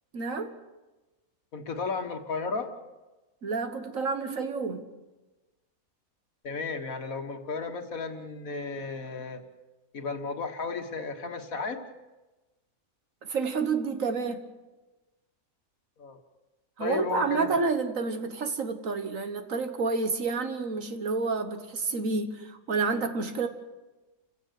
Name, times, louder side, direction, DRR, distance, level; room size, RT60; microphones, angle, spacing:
voice 1, 0.1-0.6 3.4-4.9 13.2-14.5 16.8-23.5, right 4 dB, 60° right, 1.7 m, -29 dB
voice 2, 1.5-2.7 6.4-9.4 9.9-11.8 16.0-16.2 16.8-17.6, left 4 dB, 65° left, 1.9 m, -33 dB
29.0 x 16.0 x 6.6 m
omnidirectional pair, 1.6 m